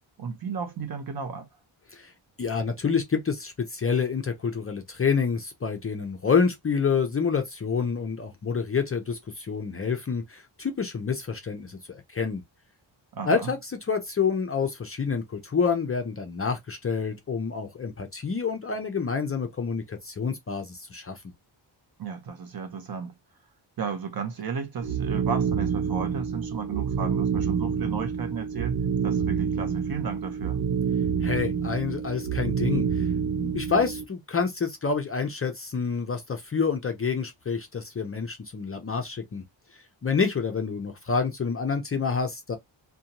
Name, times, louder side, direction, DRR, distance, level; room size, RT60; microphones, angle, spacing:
voice 1, 0.2-1.5 13.1-13.5 22.0-23.1 23.8-28.8 29.0-30.6, right 6 dB, 50° right, 0.6 m, -33 dB
voice 2, 2.4-12.4 13.3-21.2 31.2-39.4 39.7-42.6, left 5 dB, 30° left, 0.4 m, -28 dB
sound 1, 24.8-34.0, right 7 dB, 85° right, 0.7 m, -27 dB
2.5 x 2.1 x 2.8 m
wide cardioid pair, 180°, 47 cm